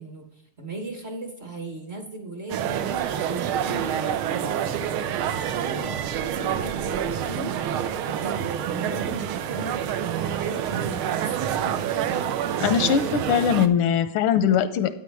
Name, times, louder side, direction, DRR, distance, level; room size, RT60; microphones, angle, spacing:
voice 1, 0.0-2.9 3.3-7.8 8.1-11.8, right 3 dB, 40° right, 3 dB, 1.1 m, -37 dB
sound 1, 2.5-13.7, right 9 dB, 80° right, 1.5 m, -27 dB
voice 2, 12.6-14.9, left 8 dB, 85° left, 12 dB, 1.5 m, -21 dB
12.5 x 8.9 x 3.5 m, 0.83 s
omnidirectional pair, 2.4 m